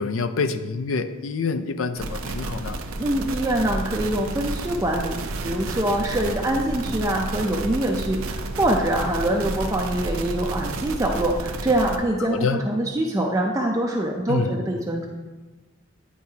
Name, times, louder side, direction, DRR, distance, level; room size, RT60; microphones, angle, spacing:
voice 1, 0.0-2.8 12.3-12.6 14.3-14.5, left 4 dB, 70° left, 10 dB, 0.4 m, -26 dB
sound 1, 2.0-12.0, right 2 dB, 85° right, 0.5 m, -31 dB
voice 2, 3.0-5.2 5.4-15.0, right 1 dB, 15° right, -1 dB, 0.4 m, -24 dB
9.5 x 4.6 x 2.8 m, 1.3 s
head